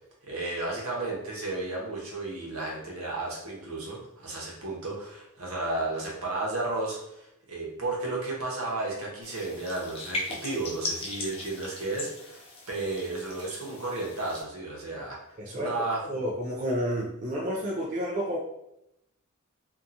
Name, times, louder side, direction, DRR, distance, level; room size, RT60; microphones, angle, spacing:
voice 1, 0.3-12.4 12.7-15.2 15.5-16.0, right 2 dB, 70° right, -3 dB, 0.9 m, -33 dB
sound 1, 9.2-14.4, left 2 dB, 25° left, 0.5 m, -38 dB
voice 2, 15.4-15.7 16.1-18.4, equal, 35° right, -3 dB, 0.3 m, -30 dB
2.8 x 2.3 x 2.5 m, 0.82 s
head